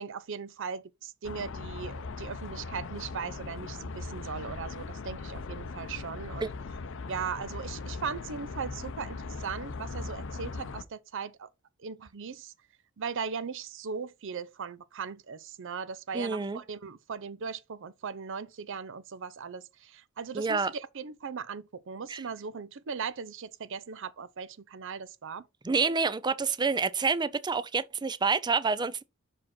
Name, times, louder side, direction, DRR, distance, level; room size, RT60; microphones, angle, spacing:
voice 1, 0.0-6.5 7.1-11.5 11.8-12.5 13.0-25.5, right 6 dB, 65° right, 0.6 m, -38 dB
sound 1, 1.2-10.8, left 4 dB, 65° left, 0.6 m, -39 dB
voice 2, 16.1-16.6 20.3-20.7 22.1-22.2 25.6-29.0, right 4 dB, 20° right, 0.4 m, -28 dB
6.0 x 4.9 x 4.2 m
head